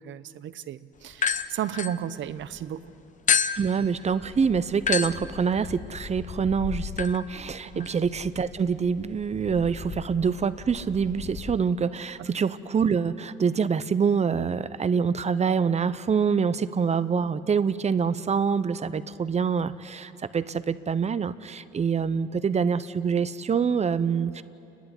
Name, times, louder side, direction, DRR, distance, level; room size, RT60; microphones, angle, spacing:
voice 1, 0.0-2.9 7.7-7.9 12.2-12.3, right 10 dB, 75° right, 14 dB, 0.8 m, -34 dB
sound 1, 1.1-2.6 3.3-11.6, left 7 dB, 40° left, 0.8 m, -32 dB
voice 2, 3.6-24.4, right 6 dB, 35° right, 14 dB, 0.8 m, -25 dB
29.5 x 11.5 x 9.9 m, 2.8 s
cardioid pair, 90°, 20 cm